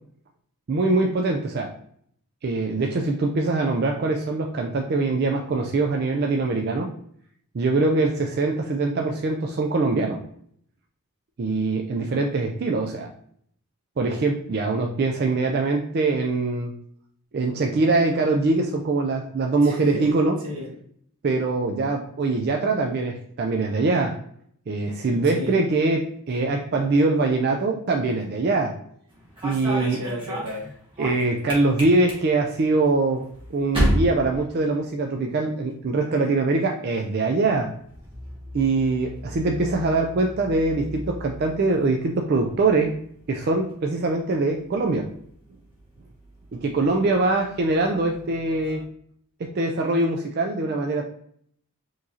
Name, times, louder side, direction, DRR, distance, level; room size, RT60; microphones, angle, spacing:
voice 1, 0.7-1.7 2.4-6.9 7.5-10.2 11.4-13.1 14.0-16.7 17.3-20.4 21.2-24.2 24.7-28.8 29.4-30.0 31.0-37.7 38.5-42.9 43.3-45.1 46.5-48.8 49.4-51.0, right 3 dB, 45° right, 2 dB, 0.3 m, -23 dB
voice 2, 19.6-20.2 20.4-20.8 25.2-25.6 29.6-30.7, left 1 dB, 80° right, 1 dB, 1.1 m, -33 dB
sound 1, 29.1-35.3 35.6-36.1 37.2-48.8, equal, 25° right, 1.3 m, -34 dB
4.5 x 3.0 x 2.7 m, 0.65 s
head